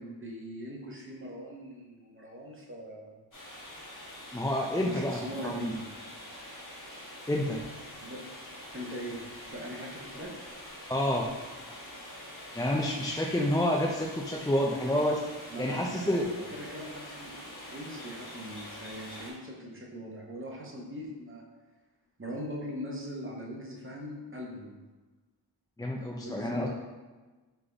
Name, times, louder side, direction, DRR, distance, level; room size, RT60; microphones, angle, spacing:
voice 1, 0.0-3.1 4.8-5.8 8.0-8.2 8.7-9.2 9.5-10.3 15.5-21.4 22.2-24.8 26.2-26.7, equal, 30° right, -2 dB, 0.9 m, -41 dB
sound 1, 3.3-19.3, left 1 dB, 45° left, 1.2 m, -45 dB
voice 2, 4.3-5.8 7.3-7.6 10.9-11.3 12.5-15.2 15.6-16.2 25.8-26.7, left 1 dB, 10° left, -1 dB, 0.3 m, -29 dB
3.7 x 3.5 x 3.3 m, 1.3 s
wide cardioid pair, 65°, 44 cm